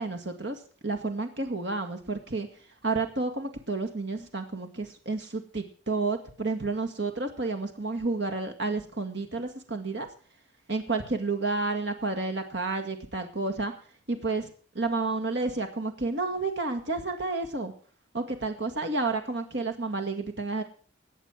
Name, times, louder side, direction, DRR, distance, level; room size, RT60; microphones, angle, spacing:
voice 1, 0.0-2.5 2.8-10.1 10.7-13.7 14.1-14.5 14.7-17.7 18.1-20.6, right 3 dB, 65° right, 5 dB, 2.0 m, -30 dB
18.5 x 6.8 x 6.2 m, 0.40 s
head